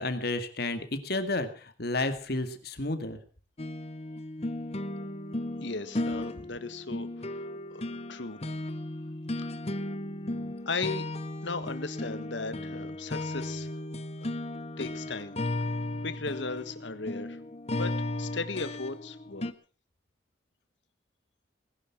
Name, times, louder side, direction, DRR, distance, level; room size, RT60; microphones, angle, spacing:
voice 1, 0.0-3.2, left 2 dB, 55° left, 9 dB, 2.1 m, -31 dB
sound 1, 3.6-19.5, left 1 dB, 35° left, 0.9 m, -35 dB
voice 2, 5.6-8.4 10.6-11.1 11.4-13.7 14.2-14.3 14.8-15.3 16.0-17.4 17.7-19.5, left 3 dB, 75° left, 12 dB, 1.6 m, -36 dB
20.0 x 11.0 x 5.9 m, 0.40 s
head